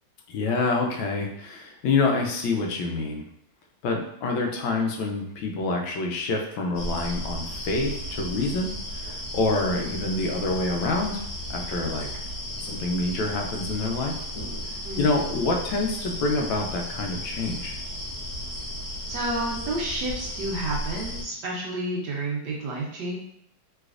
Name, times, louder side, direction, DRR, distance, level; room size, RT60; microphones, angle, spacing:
voice 1, 0.3-3.3 3.8-11.2 11.5-12.1 12.6-14.1 15.0-17.8, left 3 dB, 80° left, 1 dB, 1.3 m, -27 dB
sound 1, 6.7-21.2, equal, 55° left, 1.2 m, -34 dB
voice 2, 14.8-15.2 19.0-23.2, right 2 dB, 70° right, -3 dB, 1.1 m, -30 dB
3.3 x 3.1 x 2.4 m, 0.74 s
omnidirectional pair, 2.1 m